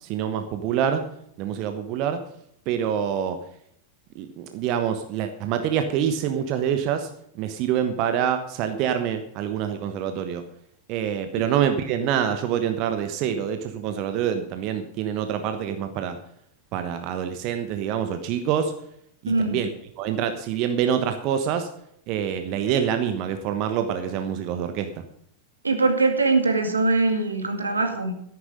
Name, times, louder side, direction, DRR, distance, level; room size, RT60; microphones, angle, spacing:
voice 1, 0.0-1.0 1.4-2.2 2.7-3.4 4.1-7.1 7.3-10.4 10.9-16.2 16.7-18.7 19.2-19.7 20.0-21.7 22.1-25.0, right 9 dB, 40° right, 7 dB, 1.2 m, -26 dB
voice 2, 19.3-19.6 25.6-28.1, right 3 dB, 75° right, 5 dB, 2.2 m, -22 dB
13.5 x 11.0 x 5.2 m, 0.71 s
figure-of-eight pair, 90°, 0 cm